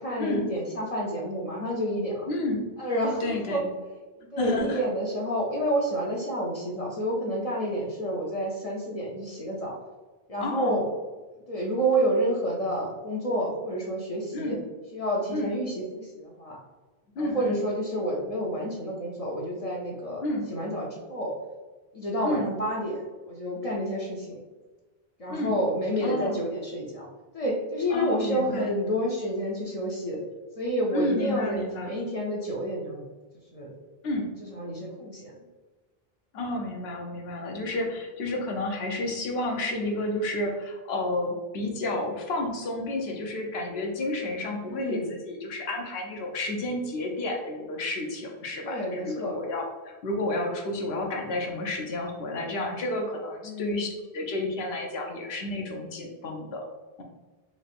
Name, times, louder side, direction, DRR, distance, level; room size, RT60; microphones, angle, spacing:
voice 1, 0.0-2.3 2.8-3.6 4.2-9.8 10.3-10.9 11.5-14.6 14.9-16.6 17.2-20.2 20.5-21.3 21.9-23.0 23.3-24.4 25.2-27.1 27.3-30.2 30.6-33.0 33.5-33.7 34.4-35.4 37.7-37.8 44.7-45.1 48.6-49.4 53.4-53.9, equal, 45° left, -2 dB, 0.5 m, -29 dB
voice 2, 2.3-2.7 3.2-3.7 4.4-4.8 10.4-10.9 14.3-14.6 15.3-15.5 17.2-17.6 20.2-20.4 22.2-22.5 25.3-25.6 26.0-26.4 27.9-28.7 30.9-31.9 34.0-34.3 36.3-56.6, left 2 dB, 85° left, 1 dB, 0.9 m, -31 dB
3.2 x 2.8 x 2.4 m, 1.2 s
omnidirectional pair, 1.0 m